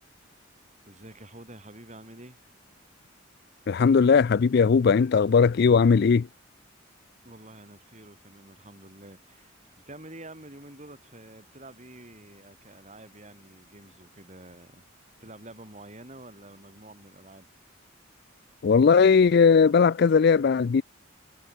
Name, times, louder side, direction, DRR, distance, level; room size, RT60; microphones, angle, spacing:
voice 1, 0.9-2.4 7.2-14.9 15.2-17.5, right 1 dB, 35° right, 6.1 m, -48 dB
voice 2, 3.7-6.3 18.6-20.8, left 5 dB, 50° left, 0.4 m, -19 dB
head